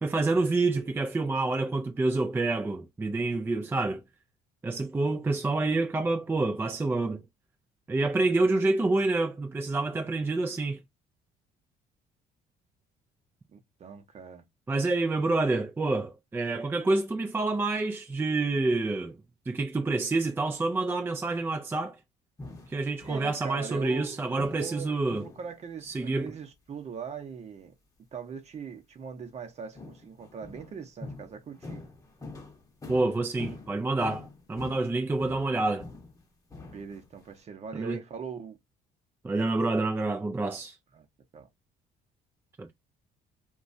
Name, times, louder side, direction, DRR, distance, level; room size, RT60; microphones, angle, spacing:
voice 1, 0.0-4.0 4.6-7.2 7.9-10.8 14.7-19.2 19.5-22.0 22.7-25.3 25.8-26.3 32.9-35.9 37.7-38.0 39.2-40.8 42.6-42.7, right 2 dB, 15° right, 0.4 m, -28 dB
voice 2, 13.5-14.4 23.0-27.7 28.1-31.8 36.7-38.6 40.9-41.1 41.3-41.5, right 6 dB, 40° right, 0.8 m, -41 dB
sound 1, 22.4-23.2 23.7-24.0 24.4-24.8 25.1-25.5 25.9-26.1 29.7-36.2 36.5-37.3, left 3 dB, 20° left, 0.9 m, -45 dB
2.9 x 2.3 x 2.6 m
cardioid pair, 110°, 17 cm